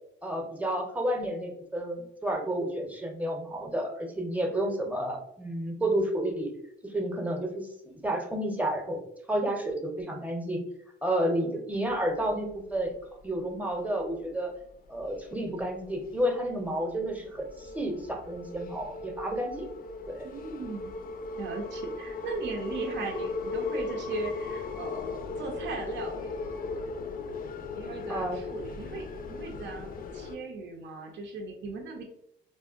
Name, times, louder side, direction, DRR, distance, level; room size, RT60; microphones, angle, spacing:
voice 1, 0.2-6.5 6.8-9.0 9.3-10.6 11.0-12.9 13.2-14.5 14.9-19.7 20.1-20.3 28.1-28.4, right 1 dB, 5° right, 2 dB, 0.7 m, -31 dB
sound 1, 12.2-12.9 13.3-13.4 13.8-14.3 14.9-15.2 15.6-30.4, left 3 dB, 45° left, 0.4 m, -38 dB
voice 2, 20.2-20.9 21.4-26.3 27.7-32.0, right 3 dB, 70° right, 2 dB, 0.6 m, -38 dB
3.5 x 2.0 x 2.4 m, 0.76 s
cardioid pair, 90°, 20 cm